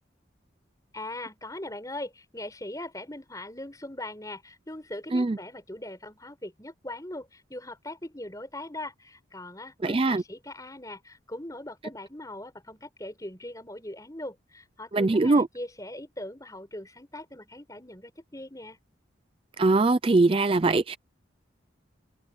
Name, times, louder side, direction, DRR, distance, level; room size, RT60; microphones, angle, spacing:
voice 1, 0.9-18.8, left 1 dB, 15° left, 5.6 m, -40 dB
voice 2, 9.8-10.2 14.9-15.5 19.6-21.0, right 3 dB, 25° right, 0.4 m, -22 dB
open air
head